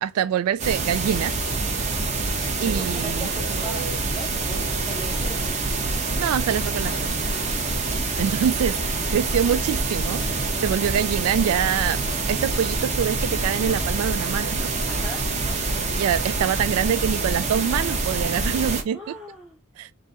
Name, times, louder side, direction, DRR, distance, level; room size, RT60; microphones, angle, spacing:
voice 1, 0.0-1.3 2.6-3.3 6.2-7.2 8.2-14.7 16.0-19.2 19.8-19.9, right 8 dB, 70° right, 0.3 m, -25 dB
sound 1, 0.6-18.8, right 3 dB, 30° right, 0.9 m, -26 dB
voice 2, 2.7-5.9 7.3-7.8 14.9-15.6 18.9-19.6, right 1 dB, 5° right, 0.7 m, -39 dB
3.8 x 2.7 x 4.1 m
head